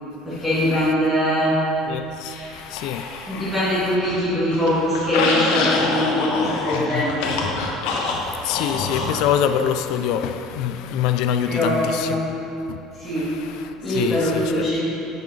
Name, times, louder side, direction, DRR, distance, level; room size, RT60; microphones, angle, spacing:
voice 1, 0.2-1.5 3.3-7.3 11.4-12.2 13.0-13.3 13.8-14.9, equal, 5° right, 2.0 m, -22 dB
voice 2, 1.9-3.5 6.7-7.0 8.3-12.1 12.7-12.8 13.2-14.6, left 9 dB, 65° left, 0.3 m, -25 dB
sound 1, 2.2-3.6 3.9-9.2, left 3 dB, 80° left, 1.1 m, -26 dB
7.4 x 5.6 x 5.4 m
cardioid pair, 155°, 0 cm